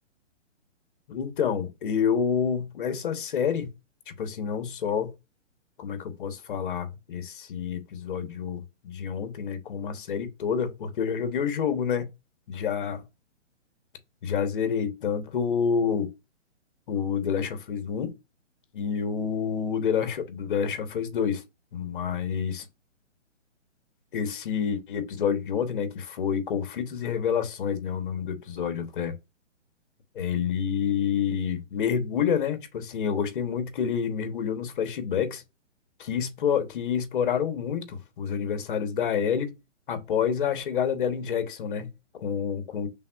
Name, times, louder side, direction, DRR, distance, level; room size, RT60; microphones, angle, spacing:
voice 1, 1.1-3.7 4.1-5.1 5.8-12.1 12.5-13.0 14.2-16.1 16.9-18.2 18.7-21.4 21.7-22.7 24.1-29.2 30.1-35.4 36.0-39.5 39.9-42.9, left 7 dB, 45° left, 1.0 m, -28 dB
5.6 x 3.5 x 2.3 m
hypercardioid pair, 160°, 37 cm